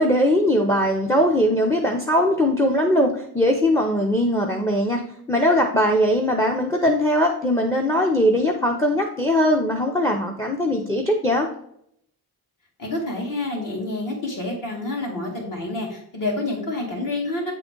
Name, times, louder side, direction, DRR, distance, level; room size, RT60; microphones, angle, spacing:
voice 1, 0.0-5.0 5.3-11.5, equal, 5° left, 2 dB, 0.5 m, -20 dB
voice 2, 12.8-17.5, left 2 dB, 55° left, -1 dB, 2.3 m, -28 dB
8.4 x 3.8 x 3.7 m, 0.70 s
wide cardioid pair, 165°, 38 cm